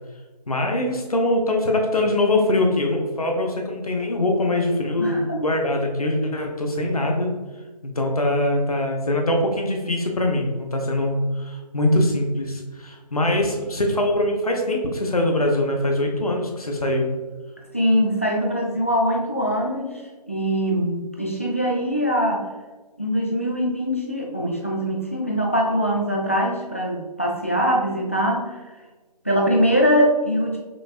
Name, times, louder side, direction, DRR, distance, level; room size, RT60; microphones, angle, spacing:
voice 1, 0.5-7.3 7.8-17.1, left 1 dB, 60° left, 2 dB, 0.8 m, -23 dB
voice 2, 5.0-5.4 17.7-20.0 20.3-22.5 23.0-28.6 29.2-30.6, equal, 20° left, -2 dB, 0.4 m, -22 dB
5.8 x 2.5 x 2.5 m, 1.3 s
figure-of-eight pair, 160°, 21 cm